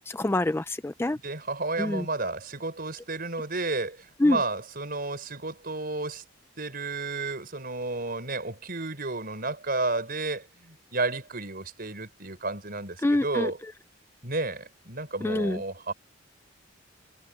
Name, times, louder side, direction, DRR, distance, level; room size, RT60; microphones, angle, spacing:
voice 1, 0.1-1.2 1.8-2.0 4.2-4.4 13.0-13.5 15.2-15.6, left 1 dB, 10° left, 0.4 m, -25 dB
voice 2, 1.2-6.2 6.6-13.6 14.2-15.9, right 3 dB, 45° right, 5.6 m, -32 dB
head